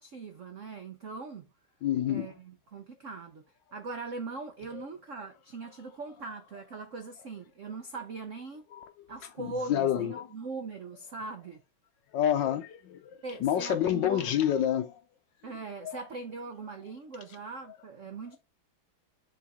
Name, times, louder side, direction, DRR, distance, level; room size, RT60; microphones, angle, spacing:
voice 1, 0.0-1.5 2.1-3.4 3.7-8.7 9.1-11.6 13.2-14.3 15.4-18.4, right 3 dB, 75° right, 0.7 m, -40 dB
voice 2, 1.8-2.3 4.7-4.9 8.7-8.9 9.4-10.3 12.1-15.0 15.8-16.0, left 10 dB, 75° left, 1.1 m, -28 dB
7.0 x 3.9 x 3.6 m
omnidirectional pair, 2.3 m